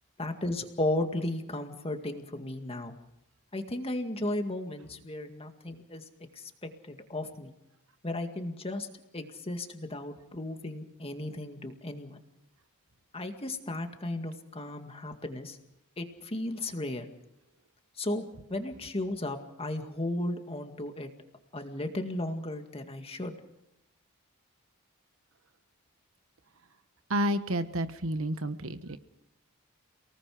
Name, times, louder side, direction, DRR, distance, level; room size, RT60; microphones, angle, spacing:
voice 1, 0.2-3.0 3.5-6.0 6.4-7.5 8.0-8.9 9.1-12.2 13.1-15.6 16.0-17.1 18.0-18.2 18.5-21.1 21.5-23.3, left 1 dB, 25° left, 5 dB, 2.0 m, -35 dB
voice 2, 27.1-29.0, right 1 dB, 65° right, 10 dB, 1.2 m, -30 dB
30.0 x 19.0 x 5.0 m, 0.85 s
head